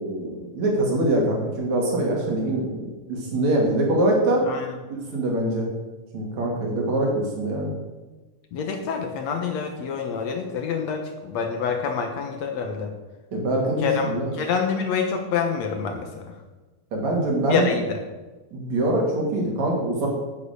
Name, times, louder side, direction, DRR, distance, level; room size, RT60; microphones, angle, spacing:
voice 1, 0.0-4.5 5.1-5.7 6.1-7.7 13.3-14.2 16.9-17.7 18.5-20.1, right 1 dB, 65° right, -1 dB, 3.8 m, -23 dB
voice 2, 8.5-12.9 13.8-14.1 14.4-16.3 17.5-18.0, left 6 dB, 65° left, 4 dB, 2.2 m, -27 dB
10.0 x 8.8 x 6.7 m, 1.2 s
omnidirectional pair, 3.5 m